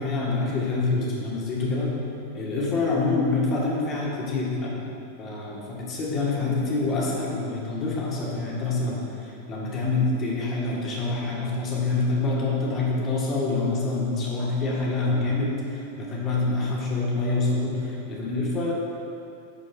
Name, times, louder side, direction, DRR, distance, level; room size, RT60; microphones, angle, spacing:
voice 1, 0.0-1.9 2.3-4.9 5.2-18.7, left 3 dB, 30° left, -4 dB, 2.2 m, -26 dB
10.0 x 5.2 x 5.0 m, 2.7 s
figure-of-eight pair, 90°, 0 cm